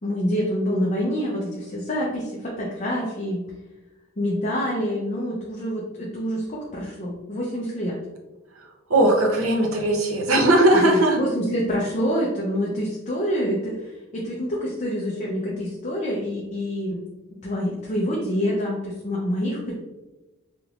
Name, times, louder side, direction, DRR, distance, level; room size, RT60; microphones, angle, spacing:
voice 1, 0.0-3.4 4.2-8.0 10.8-17.0 17.4-19.7, equal, 35° left, -4 dB, 0.6 m, -26 dB
voice 2, 8.5-11.2, right 1 dB, 90° right, 1 dB, 0.7 m, -19 dB
3.4 x 3.0 x 2.4 m, 1.1 s
head